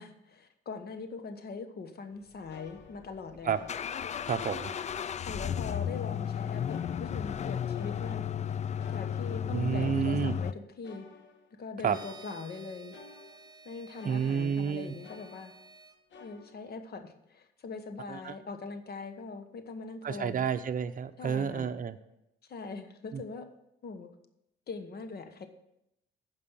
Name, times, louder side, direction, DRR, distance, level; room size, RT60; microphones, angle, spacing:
voice 1, 0.0-3.7 4.7-4.8 5.2-8.3 8.9-11.1 11.6-13.0 13.6-15.5 16.2-20.5 21.2-21.7 22.5-23.5 23.8-24.1 24.7-25.5, left 4 dB, 50° left, 8 dB, 1.2 m, -42 dB
sound 1, 2.1-2.2 2.5-4.3 4.6-5.3 5.6-8.5 8.8-14.7 15.0-15.8 16.1-16.8, left 5 dB, 70° left, 1.3 m, -54 dB
sound 2, 2.7-10.5, left 9 dB, 35° left, 0.4 m, -34 dB
voice 2, 4.3-4.7 9.5-10.4 11.8-12.0 14.0-14.9 18.1-18.3 20.0-22.0 23.1-23.2, right 7 dB, 45° right, 9 dB, 0.7 m, -30 dB
sound 3, 11.9-16.0, right 4 dB, 20° right, 1.2 m, -53 dB
9.5 x 5.5 x 7.2 m, 0.83 s
cardioid pair, 90°, 20 cm